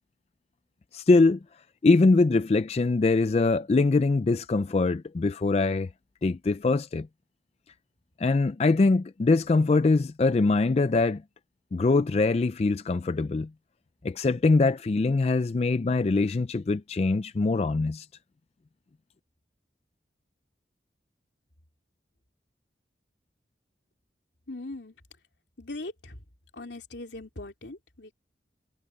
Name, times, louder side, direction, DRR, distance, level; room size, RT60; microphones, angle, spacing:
voice 1, 0.9-1.4 1.8-5.9 6.2-7.1 8.2-11.2 11.7-13.5 14.0-18.1, left 3 dB, 35° left, 0.3 m, -23 dB
voice 2, 24.5-24.9 25.6-26.2 26.5-28.1, left 2 dB, 80° left, 3.0 m, -40 dB
head